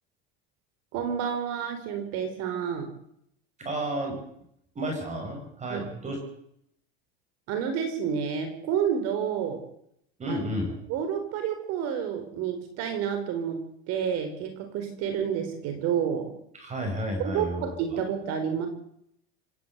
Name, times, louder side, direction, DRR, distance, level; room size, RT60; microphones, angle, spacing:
voice 1, 0.9-2.9 5.7-6.0 7.5-9.6 10.3-10.4 10.9-13.6 13.9-16.3 17.2-18.7, right 8 dB, 60° right, 7 dB, 4.6 m, -29 dB
voice 2, 3.6-4.2 4.7-6.2 10.2-10.8 16.5-18.0, right 1 dB, 25° right, 3 dB, 6.8 m, -32 dB
27.0 x 12.0 x 8.2 m, 0.72 s
supercardioid pair, 125°, 29 cm